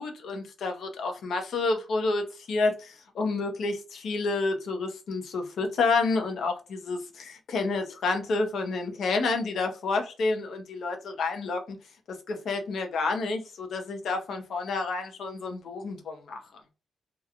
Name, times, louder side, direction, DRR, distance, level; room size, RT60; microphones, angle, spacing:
voice 1, 0.0-11.6 12.3-16.4, left 3 dB, 65° left, 0.7 m, -29 dB
2.9 x 2.2 x 2.5 m
wide cardioid pair, 145°, 0 cm